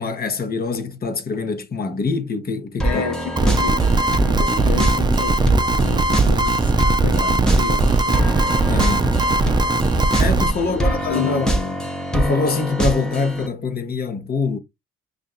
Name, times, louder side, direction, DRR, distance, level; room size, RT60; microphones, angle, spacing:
voice 1, 0.0-3.0 8.7-9.1 10.2-11.5 12.1-14.6, left 4 dB, 30° left, 0.9 m, -24 dB
voice 2, 2.8-8.4 10.6-11.8, left 6 dB, 70° left, 0.9 m, -31 dB
sound 1, 2.8-13.5, right 1 dB, ahead, 0.8 m, -24 dB
sound 2, 3.4-10.5, right 2 dB, 15° right, 0.4 m, -19 dB
Motor vehicle (road) / Siren, 5.5-11.1, right 3 dB, 50° right, 0.7 m, -32 dB
5.4 x 2.6 x 2.4 m
cardioid pair, 90°, 30 cm